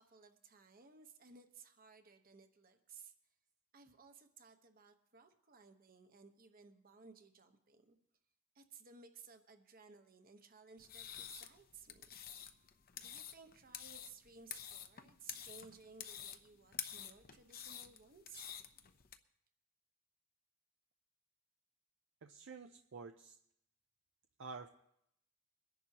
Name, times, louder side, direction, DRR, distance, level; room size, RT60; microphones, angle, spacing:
voice 1, 0.0-3.1 3.7-8.0 8.5-12.1 13.0-18.5, right 5 dB, 45° right, 7 dB, 1.1 m, -59 dB
sound 1, 10.8-19.2, left 9 dB, 45° left, 0.7 m, -49 dB
voice 2, 22.2-23.4 24.4-24.7, right 4 dB, 60° right, 6 dB, 0.6 m, -50 dB
23.0 x 10.5 x 2.9 m, 0.75 s
head